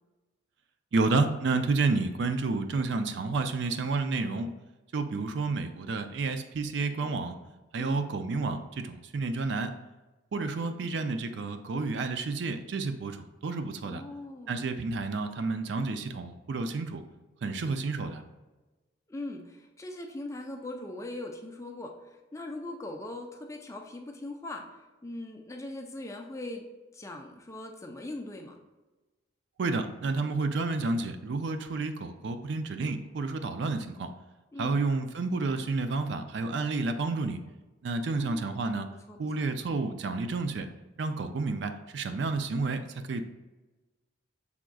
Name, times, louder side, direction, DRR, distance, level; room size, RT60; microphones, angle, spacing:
voice 1, 0.9-4.5 4.9-7.4 7.7-9.7 10.3-14.0 14.5-17.0 17.4-18.2 29.6-34.1 34.6-37.4 37.8-38.9 39.2-40.7 41.0-43.2, right 3 dB, 65° right, 8 dB, 0.4 m, -30 dB
voice 2, 7.8-8.1 13.8-14.6 19.1-21.9 22.3-24.6 25.0-26.6 26.9-28.6 34.5-34.8 38.2-38.7 39.1-39.5, left 2 dB, 15° left, 3 dB, 0.5 m, -40 dB
6.1 x 3.5 x 2.3 m, 1.1 s
head